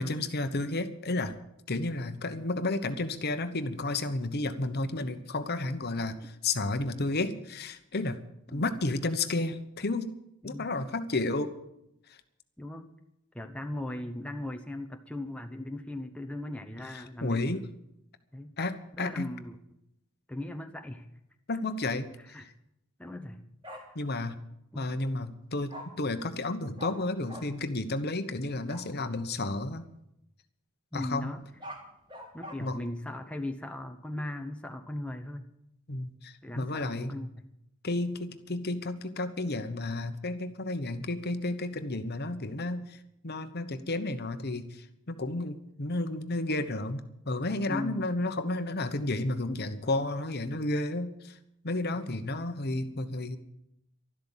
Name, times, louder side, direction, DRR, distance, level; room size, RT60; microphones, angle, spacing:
voice 1, 0.0-1.3 1.7-8.2 8.5-10.1 10.4-11.5 16.9-17.6 18.6-19.3 21.5-22.1 23.9-24.4 24.7-29.9 30.9-31.3 32.6-32.8 35.9-37.1 37.8-47.0 47.3-51.4 51.6-53.4, left 2 dB, 45° left, 9 dB, 1.1 m, -32 dB
voice 2, 12.6-12.9 13.3-17.6 18.3-18.5 19.0-19.6 20.3-21.1 22.2-22.5 23.0-23.4 23.7-23.8 24.7-24.9 30.9-31.4 32.3-35.5 36.4-37.4 47.7-48.1, left 1 dB, 5° left, 5 dB, 0.8 m, -38 dB
Bark, 23.6-23.8 25.7-25.8 26.8-26.9 27.3-27.4 28.7-28.9 31.4-32.5, left 1 dB, 20° right, 3.5 m, -42 dB
12.5 x 12.0 x 7.3 m, 0.81 s
head